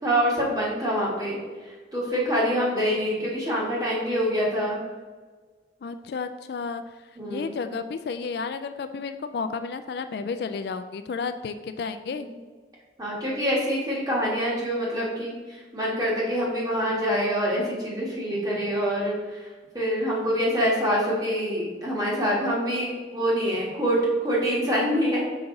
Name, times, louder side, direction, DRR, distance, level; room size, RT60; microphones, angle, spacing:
voice 1, 0.0-1.4 1.9-4.8 7.2-7.5 12.2-12.4 13.0-19.4 19.7-24.0 24.2-25.2, equal, 20° right, -5 dB, 1.7 m, -25 dB
voice 2, 5.8-6.8 7.3-12.3, left 5 dB, 60° left, 9 dB, 0.3 m, -32 dB
5.8 x 5.5 x 3.8 m, 1.4 s
head